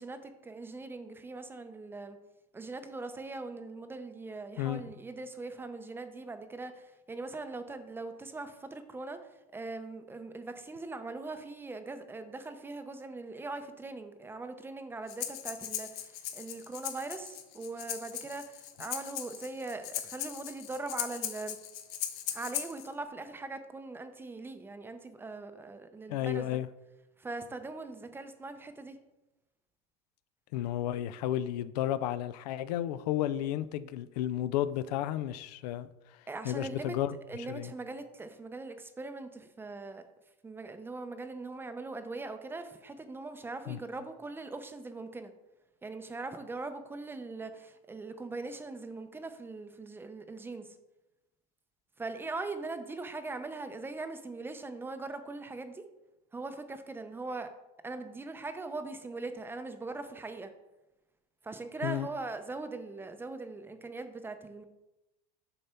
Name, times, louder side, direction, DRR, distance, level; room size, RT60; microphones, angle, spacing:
voice 1, 0.0-2.2 2.5-9.2 9.5-21.6 22.3-26.6 27.2-29.0 36.3-37.0 37.3-40.0 40.4-45.3 45.8-50.7 52.0-55.9 56.3-57.5 57.8-60.5 61.4-64.6, right 3 dB, 10° right, 0.5 m, -41 dB
Breathing, 15.1-22.9, left 11 dB, 70° left, 0.8 m, -39 dB
voice 2, 26.1-26.7 30.5-35.9 36.4-37.7 43.7-43.8 61.8-62.1, left 12 dB, 85° left, 0.4 m, -32 dB
6.9 x 5.4 x 4.3 m
supercardioid pair, 140°, 20 cm